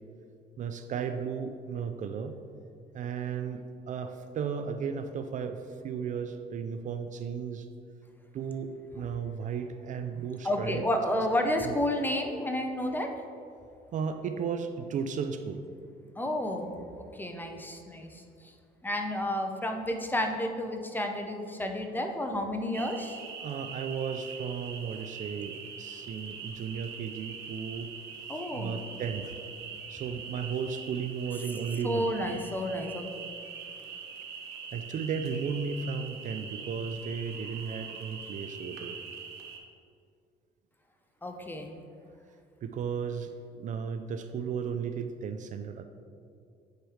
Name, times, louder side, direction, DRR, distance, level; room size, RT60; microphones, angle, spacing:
voice 1, 0.6-2.4 2.9-7.7 8.3-10.9 11.5-11.8 13.9-15.6 23.4-27.9 28.5-29.3 29.9-32.1 34.7-39.0 42.6-45.8, right 6 dB, 50° right, 8 dB, 0.4 m, -35 dB
voice 2, 10.4-13.1 16.2-18.5 18.8-23.2 28.3-28.8 31.8-33.0 41.2-41.8, left 1 dB, 10° left, 4 dB, 0.6 m, -31 dB
sound 1, 22.7-39.6, right 6 dB, 75° right, 0.9 m, -43 dB
9.0 x 3.2 x 4.8 m, 2.3 s
cardioid pair, 110°, 17 cm